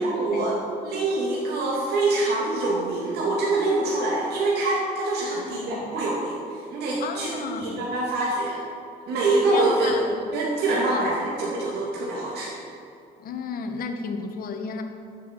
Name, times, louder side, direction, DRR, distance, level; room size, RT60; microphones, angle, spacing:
voice 1, 0.0-8.6 9.1-10.0 10.3-12.6, right 2 dB, 75° right, -5 dB, 2.6 m, -25 dB
voice 2, 5.3-6.0 7.0-7.9 9.5-10.2 10.7-11.1 13.2-14.8, left 5 dB, 60° left, 4 dB, 1.5 m, -34 dB
12.0 x 8.4 x 7.5 m, 2.5 s
cardioid pair, 110°, 17 cm